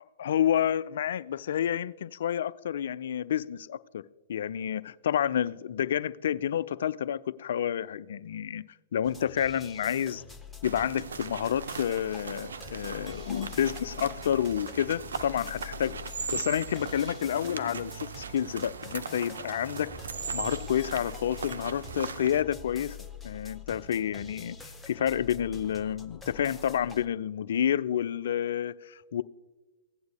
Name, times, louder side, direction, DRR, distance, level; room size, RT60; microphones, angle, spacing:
voice 1, 0.0-4.0 4.3-8.6 8.9-10.2 10.6-16.0 16.3-19.9 20.3-23.0 23.2-24.6 24.9-29.2, left 9 dB, 60° left, 0.3 m, -29 dB
sound 1, 9.0-27.1, left 5 dB, 5° left, 0.7 m, -46 dB
sound 2, 10.6-22.4, right 5 dB, 75° right, 0.5 m, -39 dB
16.5 x 9.4 x 2.2 m
figure-of-eight pair, 110°, 0 cm